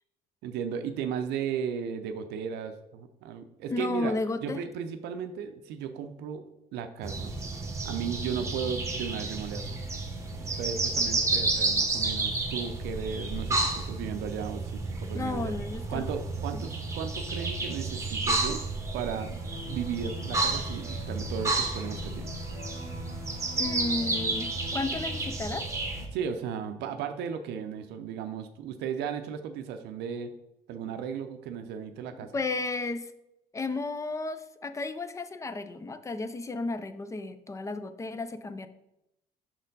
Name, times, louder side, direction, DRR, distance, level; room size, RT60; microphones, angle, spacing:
voice 1, 0.4-4.1 4.4-6.5 6.7-7.3 7.8-9.8 10.6-15.5 15.9-18.6 18.9-19.4 19.7-22.3 26.1-30.3 30.7-32.3, right 7 dB, 85° right, 7 dB, 0.5 m, -35 dB
voice 2, 3.7-4.6 15.1-16.1 16.5-16.7 23.6-25.7 32.2-33.1 33.5-38.7, left 3 dB, 20° left, 11 dB, 0.4 m, -33 dB
sound 1, 7.0-26.1, right 3 dB, 15° right, 1.0 m, -31 dB
sound 2, 19.1-25.2, left 3 dB, 75° left, 1.9 m, -45 dB
6.1 x 4.2 x 3.9 m, 0.88 s
cardioid pair, 110°, 17 cm